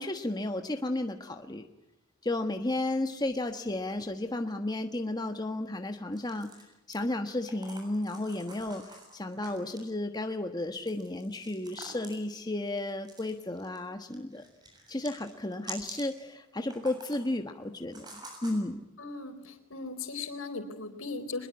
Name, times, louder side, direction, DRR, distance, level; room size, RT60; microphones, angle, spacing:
voice 1, 0.0-1.7 2.2-6.5 6.9-14.4 14.9-18.8, left 2 dB, 20° left, 6 dB, 1.3 m, -33 dB
sound 1, 6.1-7.0 7.5-9.9 10.7-12.3 13.0-13.8 14.1-16.1 16.6-17.3 17.9-18.6, right 2 dB, 20° right, 7.2 m, -47 dB
voice 2, 19.0-21.5, left 3 dB, 85° left, 7 dB, 4.1 m, -38 dB
23.5 x 22.0 x 9.6 m, 0.95 s
head